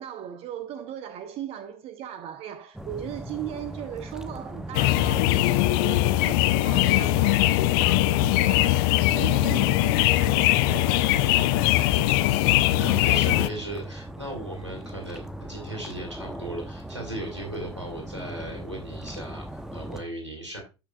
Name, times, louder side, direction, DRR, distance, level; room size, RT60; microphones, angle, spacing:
voice 1, 0.0-11.7, right 10 dB, 45° right, 0.7 m, -38 dB
sound 1, 2.7-20.0, right 1 dB, 5° right, 0.8 m, -39 dB
sound 2, 4.7-13.5, left 16 dB, 55° left, 0.4 m, -21 dB
voice 2, 12.6-20.6, right 1 dB, 90° right, 2.3 m, -36 dB
12.0 x 5.6 x 2.3 m
figure-of-eight pair, 65°, 14 cm